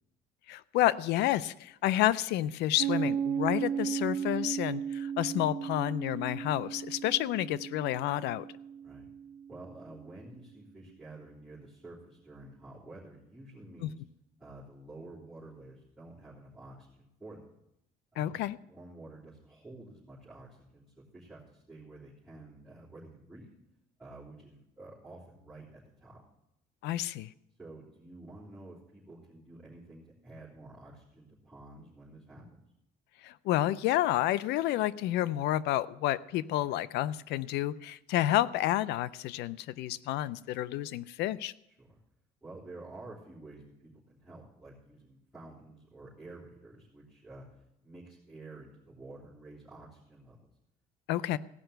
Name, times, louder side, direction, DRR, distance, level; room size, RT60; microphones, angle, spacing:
voice 1, 0.5-8.4 13.8-13.9 18.2-18.6 26.8-27.3 33.2-41.5 51.1-51.4, left 14 dB, 85° left, 18 dB, 0.5 m, -30 dB
Piano, 2.8-10.0, right 8 dB, 80° right, 1.2 m, -35 dB
voice 2, 9.5-14.0 14.4-17.5 18.1-18.4 18.7-23.5 24.0-26.2 27.6-32.6 41.7-42.0 42.4-50.4, right 2 dB, 5° right, -10 dB, 3.5 m, -50 dB
16.0 x 5.6 x 7.8 m, 0.83 s
cardioid pair, 110°, 17 cm